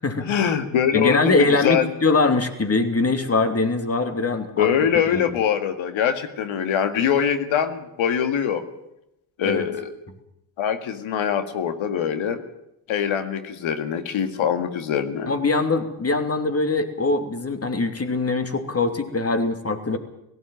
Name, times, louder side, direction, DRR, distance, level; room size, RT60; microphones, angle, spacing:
voice 1, 0.2-1.4 1.6-1.9 4.6-8.6 9.4-9.9 10.6-12.4 12.9-15.3, left 8 dB, 70° left, 8 dB, 2.0 m, -23 dB
voice 2, 0.9-4.7 5.1-5.3 9.4-9.7 15.3-20.0, left 3 dB, 30° left, 7 dB, 3.0 m, -22 dB
17.5 x 16.5 x 9.1 m, 0.84 s
supercardioid pair, 60°, 49 cm